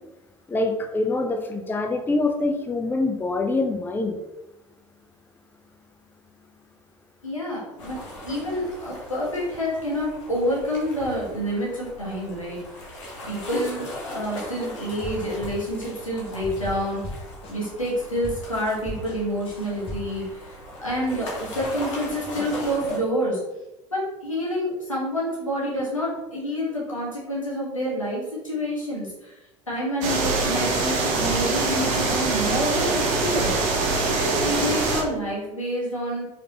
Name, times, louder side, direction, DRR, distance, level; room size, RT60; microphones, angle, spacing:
voice 1, 0.5-4.2, left 2 dB, 10° left, 5 dB, 0.5 m, -25 dB
voice 2, 7.2-12.6 13.3-17.1 17.5-23.4 23.9-29.4 29.7-33.5 34.2-36.2, equal, 85° left, -5 dB, 1.4 m, -28 dB
sound 1, 7.8-23.0, left 1 dB, 70° left, 1.2 m, -38 dB
sound 2, 14.9-17.9 18.2-20.2, left 1 dB, 35° left, 1.3 m, -37 dB
sound 3, 30.0-35.0, right 3 dB, 55° right, 0.9 m, -23 dB
4.8 x 3.4 x 2.9 m, 1.0 s
figure-of-eight pair, 60°, 16 cm